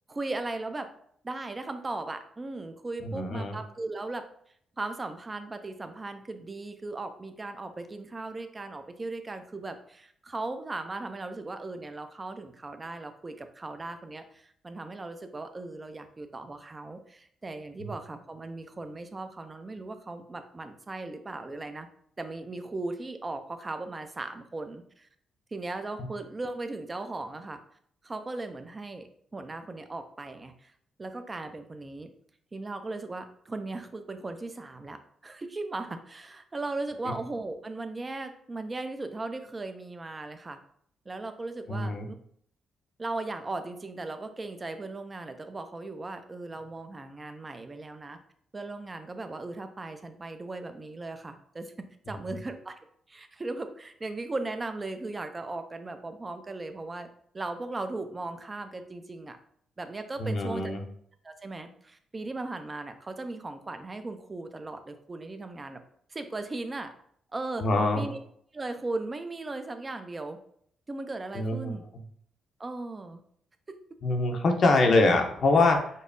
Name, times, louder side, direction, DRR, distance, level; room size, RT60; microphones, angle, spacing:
voice 1, 0.1-0.9 1.2-4.2 4.8-21.9 22.2-25.1 25.5-27.6 28.0-30.7 31.0-32.1 32.5-35.0 35.2-40.6 41.1-42.2 43.0-48.2 48.5-52.8 53.1-57.1 57.3-59.4 59.8-60.7 61.2-65.8 66.1-66.9 67.3-67.6 68.0-68.2 68.5-70.4 70.9-71.8 72.6-73.2, right 2 dB, 30° right, 8 dB, 0.5 m, -37 dB
voice 2, 3.0-3.6 17.8-17.9 26.0-26.1 37.1-37.2 41.7-42.1 60.2-60.8 67.6-68.1 71.3-71.8 74.0-75.9, left 2 dB, 60° left, 3 dB, 0.7 m, -24 dB
5.2 x 2.0 x 2.6 m, 0.65 s
supercardioid pair, 65°, 0 cm